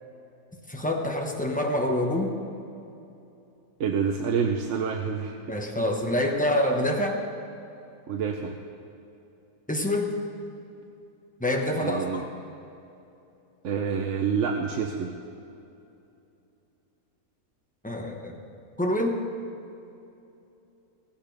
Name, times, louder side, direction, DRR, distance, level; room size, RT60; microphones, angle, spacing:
voice 1, 0.7-2.4 5.5-7.2 9.7-10.1 11.4-12.2 17.8-18.4 18.8-19.2, left 1 dB, 5° left, 1 dB, 1.1 m, -26 dB
voice 2, 3.8-5.4 8.1-8.6 11.8-12.2 13.6-15.1, right 6 dB, 60° right, 2 dB, 1.0 m, -27 dB
16.5 x 16.0 x 3.4 m, 2.8 s
omnidirectional pair, 1.6 m